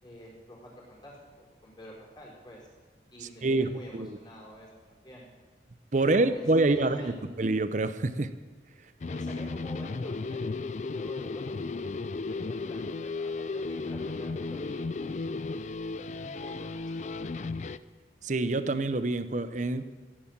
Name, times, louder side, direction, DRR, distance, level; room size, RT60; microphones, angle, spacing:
voice 1, 0.0-2.7 3.1-5.3 6.0-7.4 8.8-11.9 12.3-15.2 16.1-17.2, equal, 25° left, -4 dB, 4.7 m, -48 dB
voice 2, 3.4-4.2 5.9-7.1 7.4-8.3 18.2-20.1, right 2 dB, 45° right, 12 dB, 0.6 m, -26 dB
sound 1, 9.0-17.8, left 3 dB, 40° left, 0.4 m, -34 dB
15.0 x 11.0 x 7.3 m, 1.3 s
head